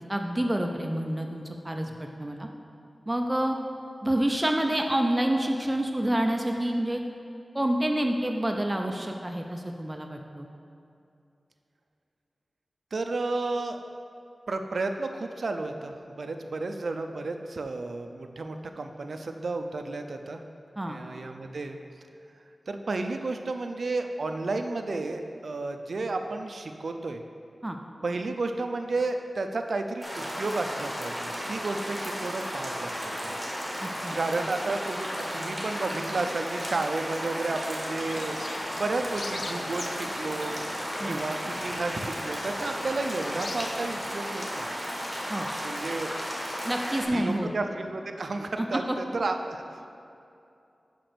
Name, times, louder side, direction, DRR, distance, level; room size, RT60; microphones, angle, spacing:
voice 1, 0.1-2.5 3.1-3.6 4.0-7.0 7.5-10.5 20.8-21.0 27.6-27.8 33.8-34.2 41.0-41.2 45.3-45.5 46.7-47.5 48.6-49.0, right 1 dB, 20° right, 3 dB, 0.5 m, -28 dB
voice 2, 12.9-13.8 14.5-20.4 20.9-21.8 22.7-27.2 28.0-33.4 34.1-38.4 38.8-40.7 41.1-44.7 45.6-46.2 47.1-49.9, right 3 dB, 70° right, 6 dB, 0.5 m, -32 dB
sound 1, 30.0-47.0, equal, 10° left, 1.9 m, -34 dB
sound 2, 37.9-44.1, left 3 dB, 65° left, 0.4 m, -43 dB
5.9 x 5.1 x 6.7 m, 2.6 s
wide cardioid pair, 80°, 0 cm